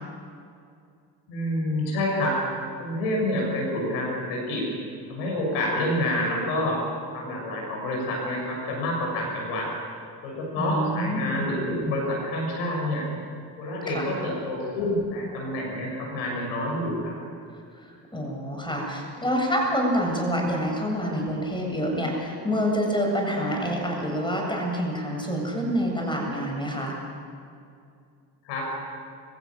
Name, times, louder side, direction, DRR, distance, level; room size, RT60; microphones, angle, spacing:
voice 1, 1.3-2.4 2.8-4.7 5.1-6.8 7.1-9.7 10.2-13.0 13.6-17.1 28.4-28.7, left 1 dB, 75° left, -1 dB, 6.9 m, -28 dB
voice 2, 10.6-11.4 13.9-14.1 17.8-27.0, equal, 10° left, 0 dB, 7.8 m, -27 dB
25.5 x 16.0 x 7.5 m, 2.4 s
hypercardioid pair, 55°, 48 cm